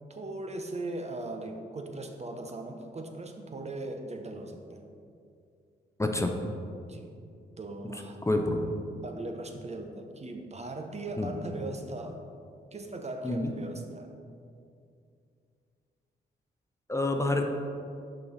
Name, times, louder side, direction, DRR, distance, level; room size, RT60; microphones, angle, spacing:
voice 1, 0.1-4.8 6.9-7.1 7.6-8.2 9.0-12.2 12.7-14.1, right 2 dB, 30° right, 4 dB, 0.7 m, -39 dB
voice 2, 6.0-6.3 8.3-8.7 11.2-11.3 13.2-13.5 16.9-17.5, left 2 dB, 15° left, 4 dB, 0.6 m, -27 dB
5.8 x 4.8 x 4.1 m, 2.4 s
supercardioid pair, 50°, 21 cm